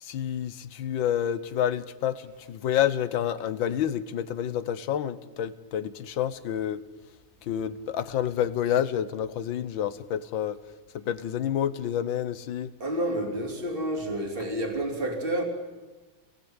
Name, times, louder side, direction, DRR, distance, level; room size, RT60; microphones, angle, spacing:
voice 1, 0.0-6.8 7.5-10.6 10.9-12.7, left 10 dB, 75° left, 13 dB, 1.7 m, -29 dB
voice 2, 12.8-15.4, right 1 dB, 25° right, 2 dB, 3.5 m, -29 dB
27.5 x 19.5 x 8.9 m, 1.2 s
omnidirectional pair, 2.1 m